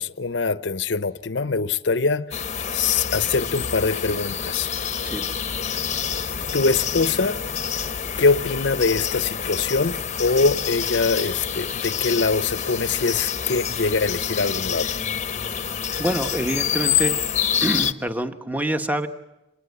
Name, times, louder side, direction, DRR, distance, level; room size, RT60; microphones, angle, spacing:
voice 1, 0.0-2.3 2.7-4.7 6.5-7.4 8.2-14.9, left 4 dB, 70° left, 0.8 m, -23 dB
sound 1, 2.3-17.9, left 8 dB, 40° left, 0.8 m, -27 dB
voice 2, 15.3-15.7 16.0-17.2 17.6-19.1, right 1 dB, 10° right, 1.0 m, -26 dB
26.5 x 20.0 x 8.2 m
head